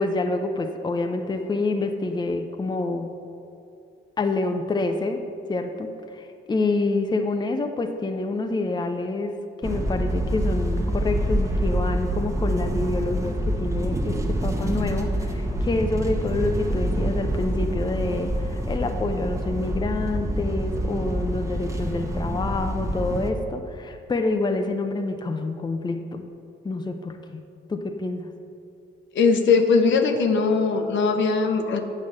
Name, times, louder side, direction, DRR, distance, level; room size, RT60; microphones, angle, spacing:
voice 1, 0.0-3.2 4.2-26.3 26.6-27.4 27.7-28.3, left 2 dB, 20° left, 6 dB, 0.6 m, -27 dB
sound 1, 9.6-23.3, right 1 dB, 15° right, 1.1 m, -26 dB
voice 2, 29.1-31.8, left 4 dB, 70° left, 5 dB, 0.9 m, -20 dB
8.7 x 4.9 x 7.3 m, 2.5 s
cardioid pair, 90°, 20 cm